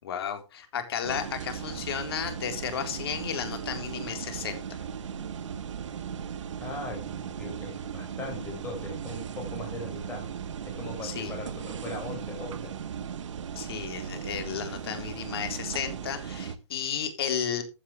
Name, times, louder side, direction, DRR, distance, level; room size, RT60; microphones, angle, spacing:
voice 1, 0.0-4.8 11.0-11.4 13.5-17.6, left 8 dB, 55° left, 7 dB, 4.0 m, -33 dB
sound 1, 1.0-16.5, right 7 dB, 85° right, 1.6 m, -37 dB
voice 2, 6.6-10.3 10.6-12.7, left 2 dB, 15° left, 3 dB, 5.6 m, -39 dB
15.5 x 10.0 x 3.3 m, 0.28 s
hypercardioid pair, 170°, 15 cm